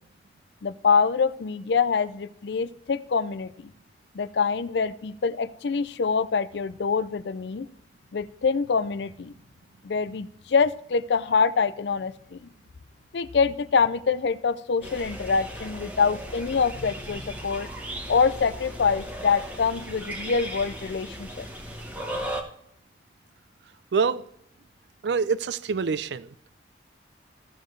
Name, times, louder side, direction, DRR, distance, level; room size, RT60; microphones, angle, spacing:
voice 1, 0.6-3.7 4.1-7.7 8.1-9.3 9.8-12.5 13.1-17.7 18.1-21.5, left 5 dB, 75° left, 0.5 m, -25 dB
sound 1, 14.8-22.4, right 1 dB, 10° right, 1.1 m, -37 dB
voice 2, 23.9-24.2 25.0-26.3, right 5 dB, 75° right, 0.4 m, -25 dB
15.0 x 6.6 x 3.2 m
head